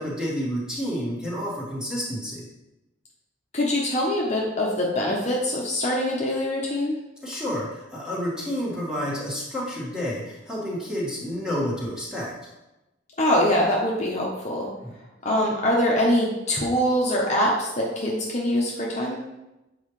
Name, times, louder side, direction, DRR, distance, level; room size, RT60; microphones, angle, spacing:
voice 1, 0.0-2.5 7.2-12.5 14.8-14.9, equal, 5° right, -6 dB, 1.9 m, -30 dB
voice 2, 3.5-7.0 13.2-14.7 15.2-19.2, left 1 dB, 40° left, -3 dB, 1.0 m, -23 dB
7.9 x 4.9 x 3.2 m, 0.98 s
head